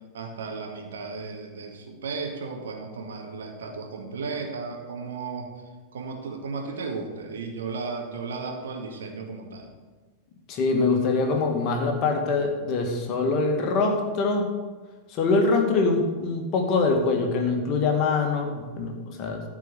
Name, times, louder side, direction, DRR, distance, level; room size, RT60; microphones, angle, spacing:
voice 1, 0.1-5.5 5.9-9.7, right 4 dB, 65° right, 2 dB, 1.9 m, -34 dB
voice 2, 10.5-14.5 15.1-19.4, left 3 dB, 40° left, 3 dB, 2.0 m, -24 dB
14.0 x 4.9 x 8.1 m, 1.3 s
figure-of-eight pair, 90°, 0 cm